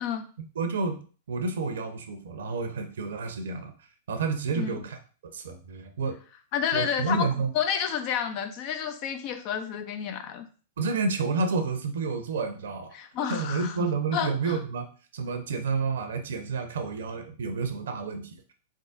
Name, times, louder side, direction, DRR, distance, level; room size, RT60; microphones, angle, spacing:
voice 1, 0.6-1.0 1.3-5.0 5.3-6.2 6.7-7.5 10.8-12.9 13.2-14.9 15.1-18.5, right 4 dB, 65° right, 7 dB, 0.7 m, -30 dB
voice 2, 6.5-7.3 7.5-10.5 12.9-14.6, left 8 dB, 45° left, 7 dB, 0.6 m, -30 dB
3.8 x 3.6 x 2.6 m, 0.39 s
figure-of-eight pair, 100°, 0 cm